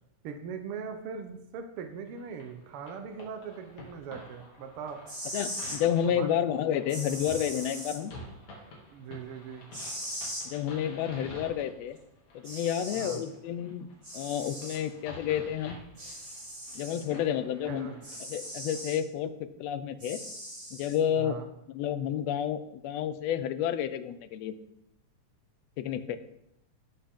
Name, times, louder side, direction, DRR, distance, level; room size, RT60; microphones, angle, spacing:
voice 1, 0.2-5.0 6.0-6.4 8.9-9.7 12.9-13.2 17.7-18.0 21.2-21.5, right 6 dB, 75° right, 5 dB, 1.2 m, -40 dB
sound 1, 2.1-18.8, left 1 dB, 65° left, 3.6 m, -49 dB
sound 2, 4.9-5.8 6.9-8.0 9.7-10.5 12.0-12.1 12.4-13.2 14.0-14.8 16.0-17.0 18.0-19.0 20.0-21.0, equal, 25° right, 3.4 m, -39 dB
voice 2, 5.3-8.1 10.4-12.0 12.3-13.9 14.1-15.8 16.7-17.9 18.3-19.3 19.6-20.2 20.7-21.4 21.7-24.6 25.8-26.2, left 9 dB, 80° left, 11 dB, 1.5 m, -30 dB
18.0 x 6.8 x 3.7 m, 0.83 s
omnidirectional pair, 3.6 m